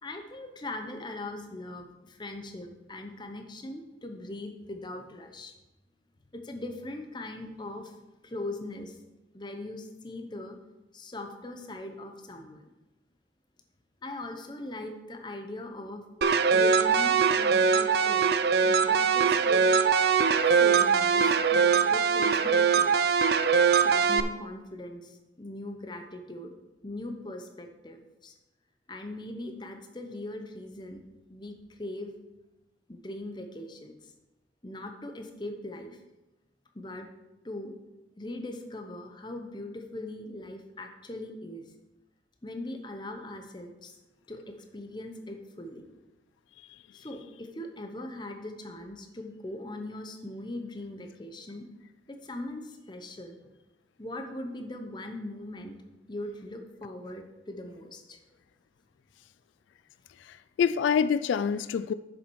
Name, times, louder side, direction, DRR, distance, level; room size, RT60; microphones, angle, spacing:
voice 1, 0.0-5.5 6.3-9.0 9.3-10.6 10.9-12.7 14.0-16.0 16.5-18.3 18.6-19.7 20.5-22.9 23.8-26.5 26.8-28.3 28.9-31.0 31.3-32.1 32.9-34.0 34.6-36.0 36.7-37.1 37.4-37.7 38.2-41.7 42.4-44.0 44.3-45.8 46.9-51.7 52.1-53.4 54.0-55.8 56.1-58.2, left 1 dB, 25° left, 5 dB, 0.8 m, -40 dB
sound 1, 16.2-24.2, right 6 dB, 60° right, 0.4 m, -22 dB
voice 2, 60.2-61.9, left 7 dB, 90° left, 14 dB, 0.3 m, -27 dB
7.3 x 7.2 x 4.6 m, 1.0 s
head